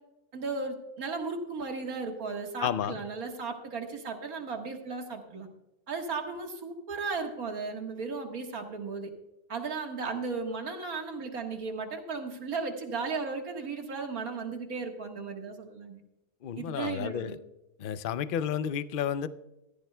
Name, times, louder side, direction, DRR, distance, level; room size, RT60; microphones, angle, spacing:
voice 1, 0.3-5.5 5.9-9.1 9.5-16.0 16.6-17.4, right 4 dB, 70° right, 3 dB, 2.0 m, -35 dB
voice 2, 2.6-3.0 16.4-17.4 17.8-19.3, left 9 dB, 85° left, 13 dB, 0.4 m, -31 dB
15.5 x 14.0 x 2.2 m, 0.93 s
omnidirectional pair, 1.6 m